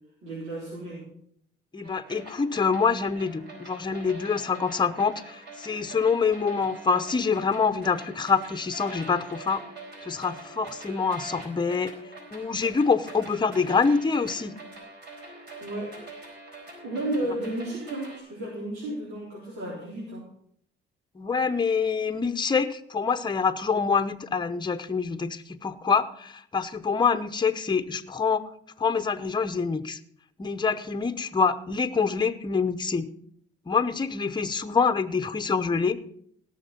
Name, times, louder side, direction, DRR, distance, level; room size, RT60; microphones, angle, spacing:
voice 1, 0.2-1.1 15.6-16.0 16.8-20.3, right 1 dB, 80° right, -5 dB, 4.0 m, -33 dB
voice 2, 1.7-9.6 10.0-11.9 12.3-14.5 21.1-28.5 28.8-30.0 30.4-33.1 33.7-36.0, left 5 dB, 20° left, 9 dB, 0.9 m, -26 dB
sound 1, 1.8-18.2, right 2 dB, 60° right, 4.5 m, -44 dB
17.0 x 6.6 x 5.4 m, 0.67 s
cardioid pair, 90°, 20 cm